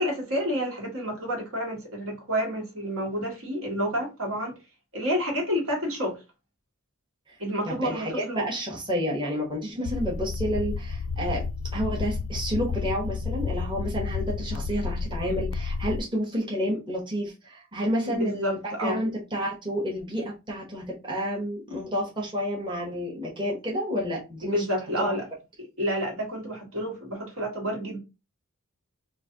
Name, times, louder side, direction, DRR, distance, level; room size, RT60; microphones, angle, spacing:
voice 1, 0.0-4.5 4.9-6.2 7.4-8.4 18.0-19.0 24.4-25.2 25.6-28.0, equal, 70° right, 1.6 m, -29 dB
voice 2, 7.7-11.5 11.7-24.6 25.0-25.1, equal, 20° right, 1.1 m, -30 dB
sound 1, 9.9-16.0, left 5 dB, 80° left, 0.3 m, -31 dB
3.2 x 2.5 x 3.8 m
head